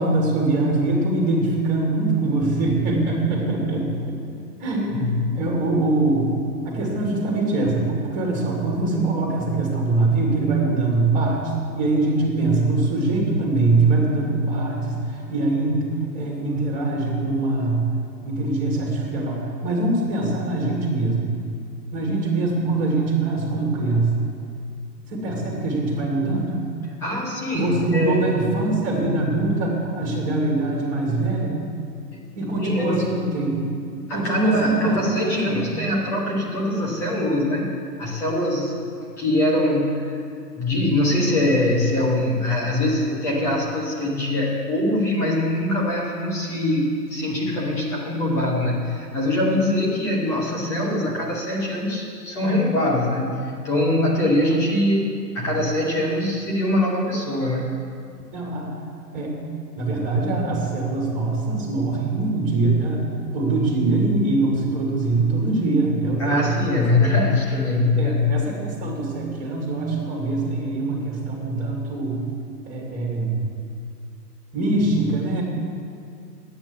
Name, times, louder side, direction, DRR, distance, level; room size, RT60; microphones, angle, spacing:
voice 1, 0.0-4.2 4.6-6.3 6.6-11.4 11.7-17.9 18.2-21.3 21.9-24.1 25.1-26.6 27.5-31.6 32.4-33.6 34.1-35.6 58.3-58.7 59.1-59.4 59.8-63.0 63.3-66.5 67.9-72.2 72.7-73.4 74.5-75.4, right 2 dB, 15° right, -2 dB, 2.6 m, -23 dB
voice 2, 4.9-5.4 27.0-28.3 32.1-33.1 34.1-37.7 38.0-38.7 39.2-40.2 40.6-53.4 53.6-57.7 66.2-68.4, left 1 dB, 5° left, -3 dB, 0.5 m, -23 dB
10.5 x 8.7 x 7.3 m, 2.3 s
hypercardioid pair, 145°, 49 cm